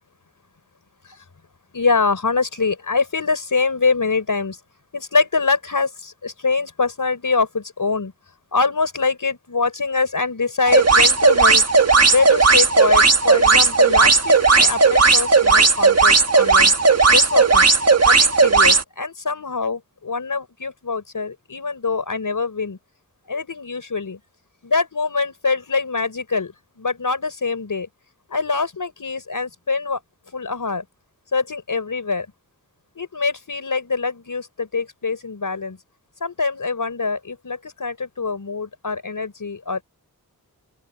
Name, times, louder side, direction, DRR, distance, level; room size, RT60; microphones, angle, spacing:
voice 1, 1.7-4.6 4.9-8.1 8.5-11.6 12.1-16.7 17.1-17.7 18.0-22.8 23.3-24.2 24.6-27.9 28.3-30.0 30.3-30.8 31.3-32.3 33.0-35.8 36.2-39.8, left 4 dB, 60° left, 4.6 m, -24 dB
sound 1, 10.7-18.8, right 4 dB, 45° right, 1.5 m, -14 dB
open air
wide cardioid pair, 90°, 36 cm